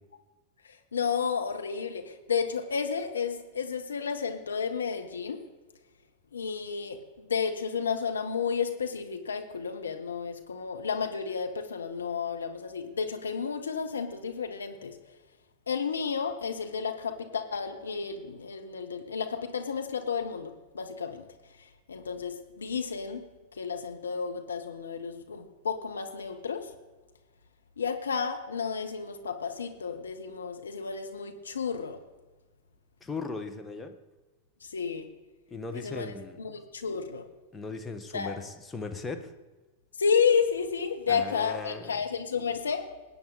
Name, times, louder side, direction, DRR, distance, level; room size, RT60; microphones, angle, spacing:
voice 1, 0.7-5.4 6.3-15.0 15.7-21.3 21.6-23.2 23.5-26.7 27.8-32.0 34.6-35.1 35.7-37.2 38.1-38.3 40.0-42.8, left 6 dB, 70° left, 5 dB, 1.0 m, -32 dB
voice 2, 33.0-33.9 35.5-36.4 37.5-39.3 41.1-42.0, left 3 dB, 10° left, 5 dB, 1.2 m, -38 dB
21.0 x 8.8 x 4.0 m, 1.2 s
figure-of-eight pair, 90°, 0 cm